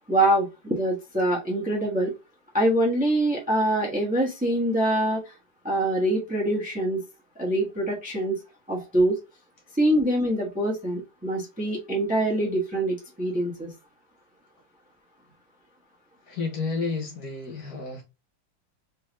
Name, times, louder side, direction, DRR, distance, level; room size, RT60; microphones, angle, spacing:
voice 1, 0.1-2.1 2.5-5.3 5.6-7.0 7.4-8.4 8.7-9.2 9.8-13.7, right 1 dB, 5° right, 0.7 m, -24 dB
voice 2, 16.3-18.0, left 4 dB, 60° left, 1.2 m, -31 dB
3.4 x 3.2 x 2.9 m
omnidirectional pair, 2.1 m